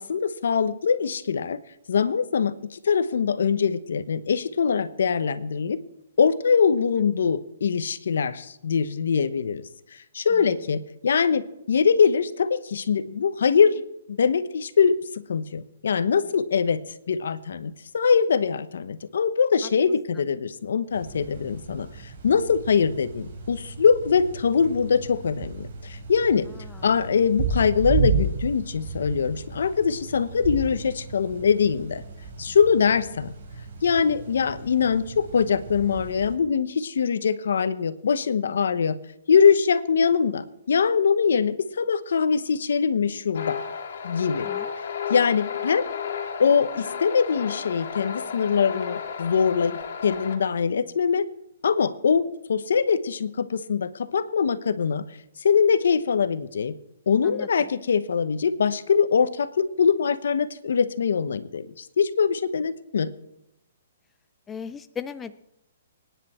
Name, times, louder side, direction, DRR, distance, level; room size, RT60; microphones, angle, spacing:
voice 1, 0.0-1.6 1.9-5.8 6.2-9.6 9.9-13.8 14.1-15.0 15.3-16.8 17.1-21.9 22.2-26.4 26.8-32.0 32.4-33.3 33.8-39.0 39.3-43.6 44.0-44.5 44.8-45.9 46.4-51.2 51.6-52.2 52.5-55.0 55.4-56.7 57.1-63.1, left 6 dB, 75° left, 13 dB, 1.1 m, -23 dB
sound 1, 20.9-36.4, right 5 dB, 50° right, 5.3 m, -33 dB
voice 2, 26.5-26.9 44.4-44.7 57.2-57.7 64.5-65.4, left 7 dB, 10° left, 11 dB, 0.4 m, -38 dB
sound 2, 43.3-50.4, left 7 dB, 55° left, 2.7 m, -33 dB
25.0 x 10.5 x 4.5 m, 0.85 s
hypercardioid pair, 165°, 0 cm